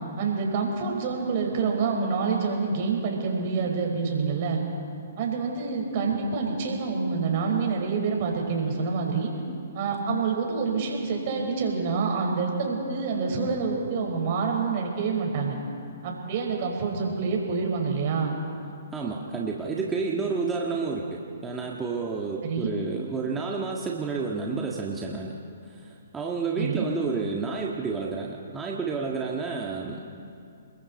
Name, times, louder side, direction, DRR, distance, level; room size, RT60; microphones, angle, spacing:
voice 1, 0.2-4.6 5.2-9.3 9.7-15.6 16.0-18.4 22.4-22.8 26.6-26.9, right 5 dB, 45° right, 1 dB, 5.1 m, -27 dB
voice 2, 18.9-25.4 25.7-30.0, right 4 dB, 10° right, -2 dB, 1.7 m, -30 dB
28.0 x 21.5 x 4.4 m, 2.5 s
hypercardioid pair, 130°, 0 cm